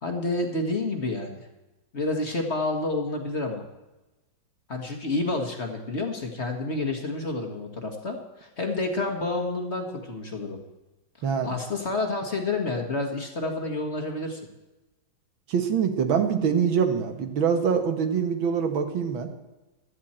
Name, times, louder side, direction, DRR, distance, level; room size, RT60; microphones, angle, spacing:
voice 1, 0.0-1.4 1.9-3.6 4.7-10.6 11.4-14.4, left 2 dB, 35° left, 3 dB, 1.7 m, -29 dB
voice 2, 15.5-19.3, right 7 dB, 85° right, 6 dB, 2.1 m, -24 dB
16.5 x 12.5 x 4.4 m, 1.1 s
omnidirectional pair, 2.1 m